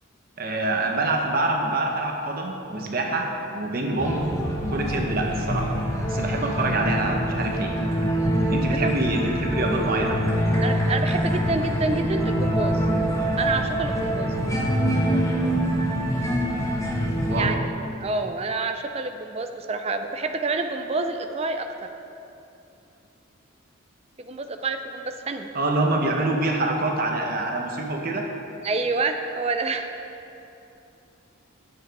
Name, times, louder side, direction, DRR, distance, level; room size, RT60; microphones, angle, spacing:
voice 1, 0.4-4.3 4.7-5.7 6.1-7.7 8.5-10.2 17.2-17.6 25.5-28.2, right 2 dB, 45° right, 1 dB, 0.9 m, -26 dB
sound 1, 4.0-17.5, equal, 15° left, 1.1 m, -25 dB
voice 2, 10.6-12.9 13.4-14.3 17.3-17.6 18.0-21.9 24.2-25.5 28.6-29.9, right 3 dB, 30° right, 6 dB, 0.5 m, -28 dB
9.7 x 8.2 x 4.7 m, 2.8 s
head